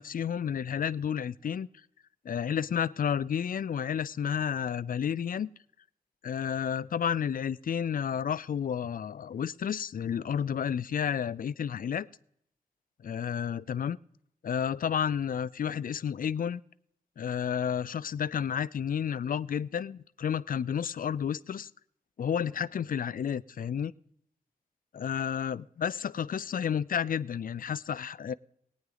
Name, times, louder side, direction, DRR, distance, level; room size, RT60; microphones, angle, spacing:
voice 1, 0.0-1.7 2.2-5.5 6.2-12.1 13.0-14.0 14.4-16.6 17.2-21.7 22.2-23.9 25.0-28.3, left 8 dB, 65° left, 19 dB, 0.4 m, -31 dB
18.5 x 9.4 x 3.9 m, 0.70 s
wide cardioid pair, 70°, 15 cm